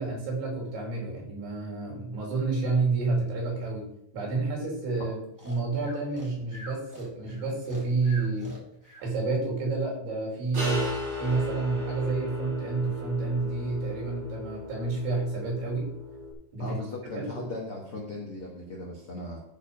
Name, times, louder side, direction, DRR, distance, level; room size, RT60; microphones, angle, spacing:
voice 1, 0.0-3.9 4.1-5.2 5.4-8.5 9.0-10.9 11.2-15.9 16.5-16.8 17.2-17.5, right 3 dB, 80° right, -2 dB, 5.5 m, -29 dB
Breathing, 5.4-9.1, equal, 5° right, 1.9 m, -45 dB
sound 1, 10.5-16.3, left 1 dB, 40° right, 1.9 m, -36 dB
voice 2, 16.6-19.4, left 2 dB, 70° left, -2 dB, 1.2 m, -37 dB
13.5 x 4.7 x 5.4 m, 0.73 s
omnidirectional pair, 5.3 m